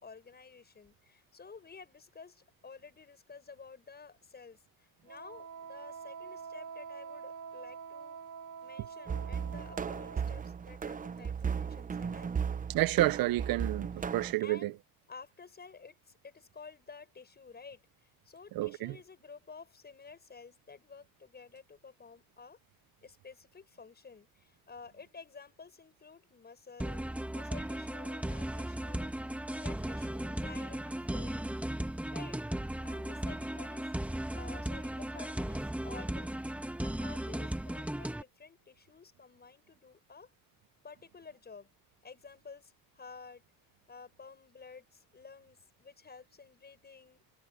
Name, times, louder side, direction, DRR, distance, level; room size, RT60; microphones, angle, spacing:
voice 1, 0.0-8.2 8.6-12.3 14.0-14.8 15.1-22.6 23.0-29.1 29.5-32.4 32.8-33.9 34.3-36.4 36.8-40.3 40.8-41.7 42.0-43.4 43.9-47.2, left 5 dB, 30° left, 7.1 m, -52 dB
Wind instrument woodwind instrument, 5.1-10.3, right 6 dB, 60° right, 1.5 m, -46 dB
sound 1, 9.1-14.3, right 6 dB, 25° right, 0.6 m, -36 dB
voice 2, 12.7-14.7 18.6-18.9, right 17 dB, 80° right, 0.6 m, -29 dB
sound 2, 26.8-38.2, right 1 dB, 5° right, 1.6 m, -36 dB
cardioid pair, 145°, 35 cm